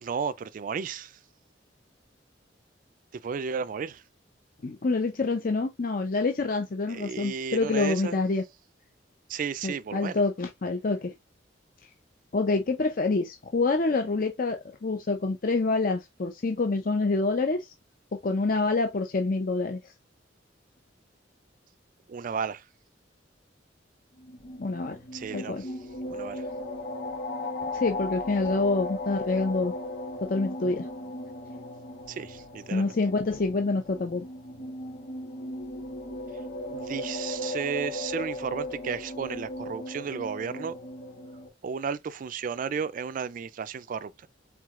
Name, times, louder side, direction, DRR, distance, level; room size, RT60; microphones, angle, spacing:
voice 1, 0.0-1.2 3.2-4.0 6.9-8.2 9.3-10.2 22.1-22.6 25.1-25.7 26.1-26.4 32.1-32.9 36.7-40.7 41.6-44.1, right 6 dB, 45° right, 0.3 m, -33 dB
voice 2, 4.6-8.4 9.6-11.1 12.3-17.7 18.2-19.9 24.6-25.0 25.3-25.6 27.7-29.7 30.2-30.9 32.7-34.2, left 3 dB, 50° left, 0.6 m, -27 dB
sound 1, 24.1-41.5, left 1 dB, 75° left, 2.9 m, -37 dB
4.6 x 3.7 x 2.4 m
head